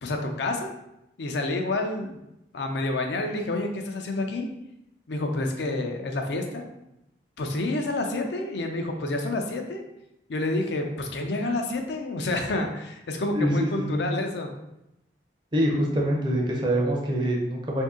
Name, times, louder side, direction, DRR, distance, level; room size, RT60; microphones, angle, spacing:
voice 1, 0.0-0.7 1.2-2.2 2.5-4.5 5.1-6.6 7.4-9.8 10.3-14.5, left 2 dB, 80° left, 3 dB, 0.5 m, -29 dB
voice 2, 13.3-14.0 15.5-17.8, equal, 25° right, -1 dB, 0.5 m, -25 dB
2.7 x 2.6 x 3.6 m, 0.85 s
head